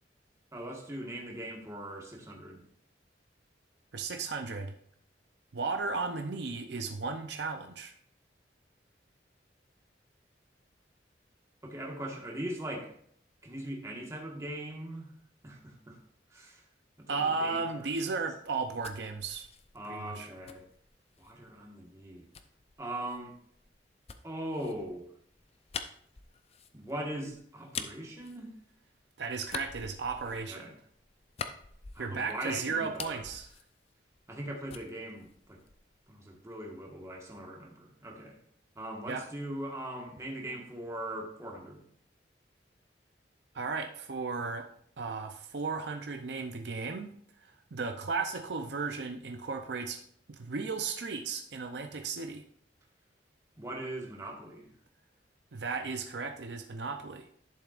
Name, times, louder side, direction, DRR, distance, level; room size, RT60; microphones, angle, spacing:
voice 1, 0.5-2.6 11.6-12.9 13.4-15.1 15.4-16.0 16.3-16.6 17.0-18.1 19.7-20.6 21.2-22.2 22.8-23.3 24.2-25.1 26.7-28.5 30.2-30.7 31.9-33.2 34.3-35.6 36.1-38.4 38.7-41.8 53.6-54.7, right 1 dB, 15° right, 0 dB, 1.5 m, -40 dB
voice 2, 3.9-4.7 5.5-7.9 17.1-19.5 19.8-20.3 29.2-30.7 32.0-33.5 39.1-39.3 43.5-44.7 45.0-47.1 47.4-50.0 50.3-52.4 55.5-57.3, right 4 dB, 70° right, 6 dB, 0.6 m, -35 dB
sound 1, 18.5-21.4 22.3-29.0 29.4-32.4 32.7-34.4 34.7-36.0, left 6 dB, 35° left, 0.5 m, -45 dB
11.5 x 7.0 x 2.5 m, 0.64 s
head